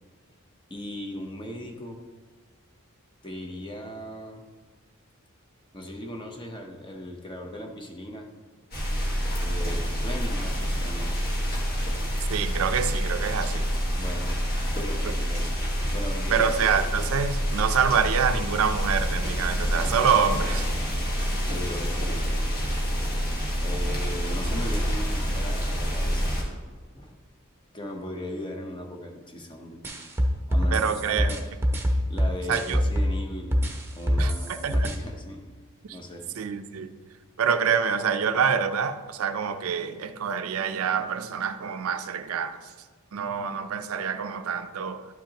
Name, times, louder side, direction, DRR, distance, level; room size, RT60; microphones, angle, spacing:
voice 1, 0.7-2.0 3.2-4.5 5.7-8.3 9.4-11.1 13.9-14.5 14.7-15.5 15.9-16.7 21.4-22.5 23.6-26.4 26.9-27.2 27.7-29.8 30.5-31.5 32.1-33.6 33.9-35.5 35.9-36.5 36.8-36.9, left 1 dB, 20° left, 0.8 m, -38 dB
sound 1, 8.7-26.4, equal, 45° left, 1.6 m, -27 dB
voice 2, 12.3-13.7 15.0-15.2 16.3-20.7 30.7-31.3 32.5-32.8 34.2-34.9 35.8-36.0 36.4-36.9 37.4-42.6 43.1-45.1, right 7 dB, 70° right, 0.4 m, -26 dB
sound 2, 29.8-33.2 33.5-34.9, equal, 10° right, 0.8 m, -24 dB
12.0 x 5.7 x 2.9 m
head